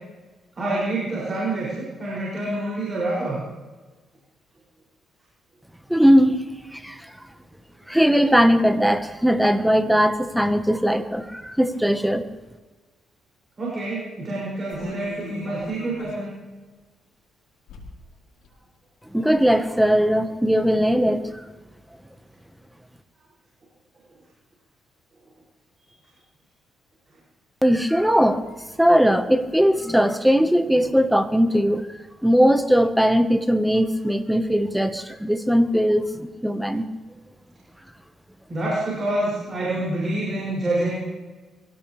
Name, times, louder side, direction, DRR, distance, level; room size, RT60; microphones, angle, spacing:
voice 1, 0.6-3.4 13.6-16.3 38.5-41.0, right 2 dB, 30° right, -6 dB, 6.9 m, -27 dB
voice 2, 5.9-6.4 6.7-7.1 7.9-12.2 19.1-21.4 27.6-31.9 32.2-36.9, equal, 5° right, 8 dB, 1.4 m, -19 dB
sound 1, 14.7-16.3 16.7-16.8 17.7-18.1 18.4-18.5 19.0-19.6 20.0-20.1, left 4 dB, 85° left, 4.4 m, -41 dB
23.5 x 17.5 x 3.5 m, 1.3 s
cardioid pair, 90°, 0 cm